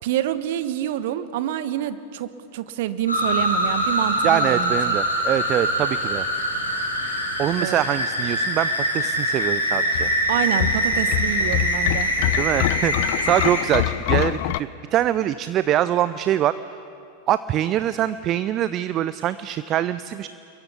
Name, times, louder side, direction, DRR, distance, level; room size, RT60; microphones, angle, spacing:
voice 1, 0.0-5.0 7.6-7.8 10.3-12.1, right 12 dB, 50° right, 13 dB, 1.3 m, -27 dB
sound 1, 3.1-13.6, equal, 85° left, 5.2 m, -24 dB
voice 2, 4.2-6.3 7.4-10.1 12.4-16.5 17.3-20.3, right 12 dB, 35° right, 14 dB, 0.6 m, -24 dB
sound 2, 9.9-14.6, left 17 dB, 50° left, 0.6 m, -25 dB
29.0 x 22.5 x 8.5 m, 2.7 s
figure-of-eight pair, 90°, 0 cm